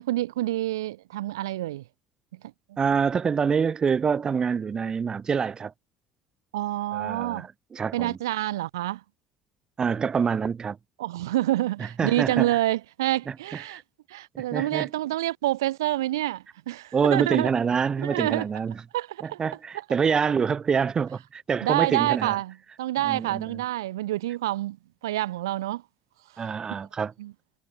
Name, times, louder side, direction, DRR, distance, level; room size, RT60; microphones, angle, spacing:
voice 1, 0.0-1.8 2.7-2.8 6.5-7.5 7.9-9.0 11.0-13.8 14.1-17.5 18.0-18.4 18.9-19.4 19.7-19.8 21.6-24.8 25.0-25.8 26.3-26.8 27.2-27.3, right 15 dB, 90° right, 0.6 m, -27 dB
voice 2, 2.8-5.7 6.9-8.2 9.8-10.8 12.0-12.6 13.7-13.8 14.5-14.9 16.9-18.7 19.2-22.3 23.0-23.6 26.4-27.1, right 6 dB, 40° right, 1.0 m, -26 dB
hypercardioid pair, 65°, 2 cm